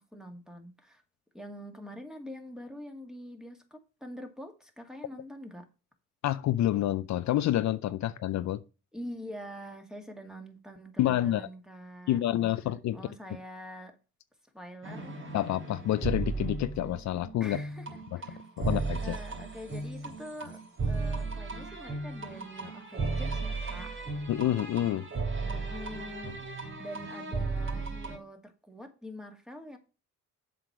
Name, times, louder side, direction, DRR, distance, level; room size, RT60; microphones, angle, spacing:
voice 1, 0.1-1.0 1.3-5.7 8.9-12.2 12.9-14.0 14.5-15.4 17.4-17.9 18.2-18.4 18.7-20.6 20.9-23.9 25.4-29.8, equal, ahead, 2.0 m, -45 dB
voice 2, 6.2-8.6 11.0-11.5 12.1-13.0 15.3-17.6 18.1-18.2 18.6-19.2 24.3-25.1, left 13 dB, 70° left, 0.6 m, -28 dB
sound 1, 14.8-28.2, right 3 dB, 40° right, 3.4 m, -35 dB
7.6 x 5.1 x 6.0 m
cardioid pair, 90°, 30 cm